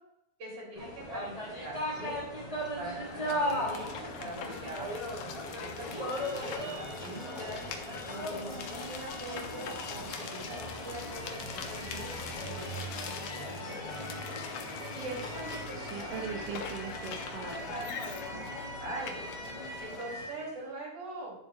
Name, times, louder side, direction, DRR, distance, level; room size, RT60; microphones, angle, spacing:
voice 1, 0.4-2.2 2.8-5.3 5.6-6.6 7.0-7.7 8.1-12.1 12.4-14.1 14.9-16.3 17.7-18.4 18.7-19.2 19.8-21.5, right 2 dB, 40° right, -3 dB, 3.7 m, -43 dB
sound 1, 0.7-20.6, equal, 10° left, 2.3 m, -38 dB
sound 2, 3.0-20.3, left 7 dB, 75° left, 2.3 m, -43 dB
voice 2, 15.7-17.7, right 6 dB, 75° right, 5 dB, 2.5 m, -40 dB
11.5 x 7.1 x 2.5 m, 0.83 s
omnidirectional pair, 4.2 m